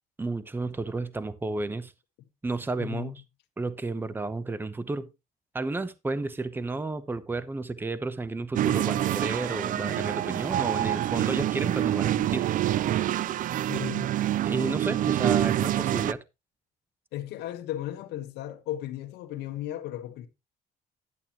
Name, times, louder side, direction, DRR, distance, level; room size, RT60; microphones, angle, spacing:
voice 1, 0.2-1.9 2.4-3.2 3.6-5.1 5.5-12.5 14.4-16.2, right 3 dB, 10° right, 0.8 m, -32 dB
voice 2, 2.8-3.2 13.7-14.2 17.1-20.3, left 13 dB, 80° left, 1.4 m, -35 dB
sound 1, 8.6-16.1, right 12 dB, 50° right, 0.4 m, -26 dB
11.0 x 8.7 x 2.9 m
cardioid pair, 110°, 17 cm